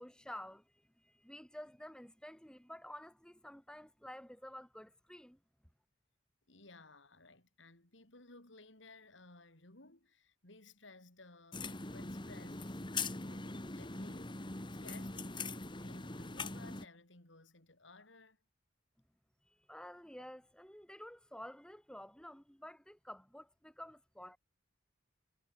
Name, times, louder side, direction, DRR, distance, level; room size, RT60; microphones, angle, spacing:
voice 1, 0.0-5.4 19.4-24.4, left 1 dB, 5° left, 1.8 m, -51 dB
voice 2, 6.5-12.8 13.2-18.4, left 2 dB, 70° left, 4.0 m, -58 dB
sound 1, 11.5-16.9, left 3 dB, 25° left, 1.7 m, -42 dB
head